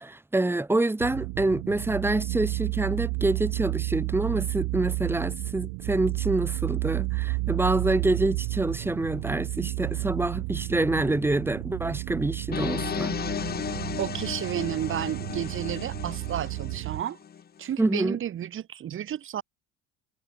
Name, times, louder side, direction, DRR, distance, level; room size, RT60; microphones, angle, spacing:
voice 1, 0.0-13.4 17.8-18.2, right 2 dB, 5° right, 1.7 m, -27 dB
sound 1, 1.0-17.0, right 34 dB, 80° right, 4.8 m, -32 dB
sound 2, 12.5-17.4, left 8 dB, 30° left, 2.6 m, -34 dB
voice 2, 14.0-17.2 17.6-19.4, right 10 dB, 40° right, 4.3 m, -32 dB
cardioid pair, 125°, 30 cm